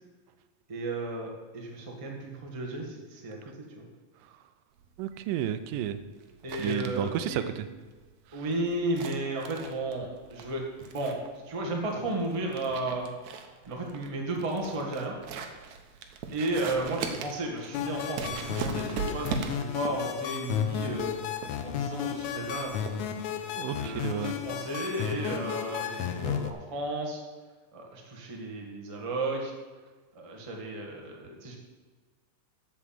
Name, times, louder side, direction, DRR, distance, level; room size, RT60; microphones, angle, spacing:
voice 1, 0.7-3.8 6.4-7.5 8.3-13.1 13.6-15.2 16.3-21.1 21.6-22.7 23.7-27.2 27.7-29.5 30.1-31.5, right 2 dB, 25° right, -1 dB, 0.7 m, -34 dB
sound 1, 4.8-23.4, right 6 dB, 70° right, 2.0 m, -40 dB
voice 2, 5.0-6.0 6.6-7.7 23.6-24.4, right 10 dB, 85° right, 11 dB, 2.3 m, -31 dB
sound 2, 17.7-26.5, left 9 dB, 75° left, 1.9 m, -33 dB
8.2 x 7.6 x 7.7 m, 1.4 s
omnidirectional pair, 3.8 m